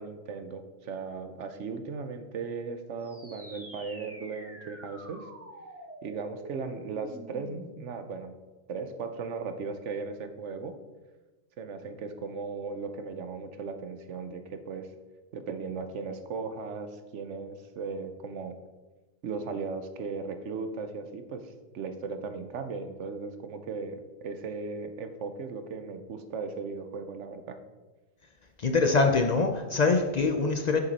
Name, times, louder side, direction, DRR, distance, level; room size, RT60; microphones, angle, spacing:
voice 1, 0.0-5.3 6.0-8.3 8.7-10.8 11.6-14.9 15.3-18.6 19.2-27.6, right 4 dB, 85° right, 8 dB, 1.1 m, -37 dB
sound 1, 3.0-8.0, right 1 dB, 10° right, 1.1 m, -47 dB
voice 2, 28.6-30.8, left 3 dB, 45° left, 5 dB, 0.6 m, -24 dB
8.0 x 6.8 x 4.1 m, 1.2 s
omnidirectional pair, 1.2 m